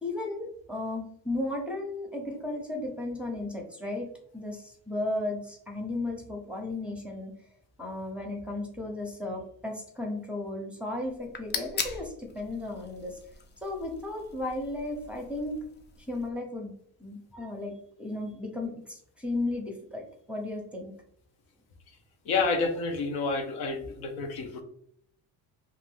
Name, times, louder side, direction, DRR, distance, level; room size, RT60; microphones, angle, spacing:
voice 1, 0.0-7.3 7.8-13.2 13.6-15.6 16.1-16.7 17.0-17.7 18.0-20.9 24.4-24.5, left 2 dB, 5° right, 0 dB, 0.7 m, -35 dB
sound 1, 11.1-16.3, left 5 dB, 30° left, 0.4 m, -40 dB
voice 2, 22.3-24.6, left 4 dB, 70° left, 5 dB, 0.7 m, -29 dB
2.5 x 2.4 x 3.6 m, 0.66 s
cardioid pair, 120°, 40 cm